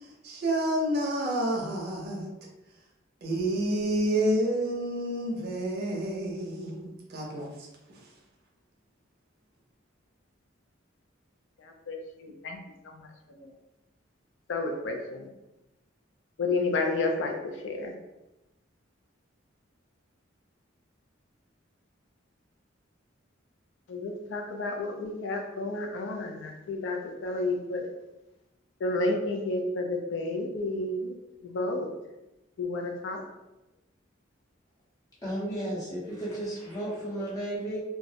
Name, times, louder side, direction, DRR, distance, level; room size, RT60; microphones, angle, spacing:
voice 1, 0.2-2.3 3.2-7.5, right 1 dB, 55° right, -2 dB, 0.6 m, -29 dB
voice 2, 11.6-12.6 12.9-13.1 13.4-13.5 14.5-15.3 16.4-17.9 23.9-27.9 28.8-31.2 31.4-31.9 32.6-33.2, left 2 dB, 65° left, 3 dB, 0.4 m, -31 dB
voice 3, 35.2-37.8, right 1 dB, 20° left, -8 dB, 0.7 m, -33 dB
2.2 x 2.0 x 2.7 m, 0.98 s
head